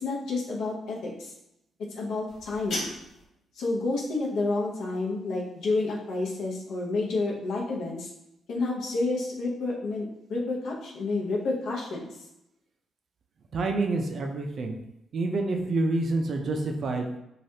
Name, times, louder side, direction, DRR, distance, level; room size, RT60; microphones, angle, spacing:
voice 1, 0.0-1.3 1.9-2.9 3.6-8.1 8.5-10.0 10.3-12.1, left 3 dB, 80° left, -3 dB, 0.7 m, -29 dB
sound 1, 2.3-3.3, left 1 dB, 55° left, 1.1 m, -36 dB
voice 2, 13.5-14.8 15.1-17.2, right 2 dB, 45° right, 3 dB, 0.4 m, -27 dB
3.2 x 2.3 x 2.7 m, 0.84 s
cardioid pair, 165°, 0 cm